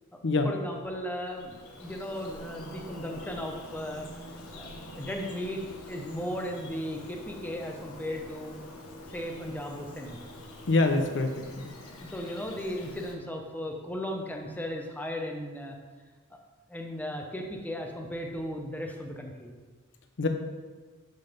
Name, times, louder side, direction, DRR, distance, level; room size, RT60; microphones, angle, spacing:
voice 1, 0.1-4.1 4.5-5.6 5.9-8.8 9.1-10.2 12.0-15.8 16.7-19.5, equal, 10° left, 2 dB, 0.9 m, -36 dB
Bird vocalization bird call bird song, 1.1-13.1, left 1 dB, 75° left, 1.3 m, -45 dB
voice 2, 10.7-11.7 20.2-20.3, left 3 dB, 55° left, 5 dB, 0.7 m, -25 dB
11.0 x 4.0 x 5.2 m, 1.4 s
head